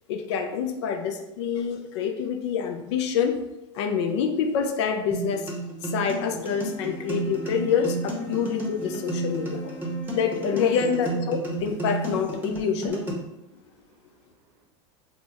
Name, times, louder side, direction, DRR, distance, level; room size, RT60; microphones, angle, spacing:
voice 1, 0.1-3.4 3.7-5.5 5.8-9.8 10.1-13.0, left 7 dB, 65° left, 6 dB, 0.4 m, -26 dB
sound 1, 5.1-13.1, right 2 dB, 10° right, 0.8 m, -32 dB
Wind instrument woodwind instrument, 6.4-11.2, right 1 dB, 90° left, 0.8 m, -42 dB
voice 2, 10.8-11.2 13.4-14.7, right 5 dB, 55° right, 2 dB, 0.7 m, -46 dB
3.3 x 2.1 x 2.8 m, 0.91 s
hypercardioid pair, 95°, 16 cm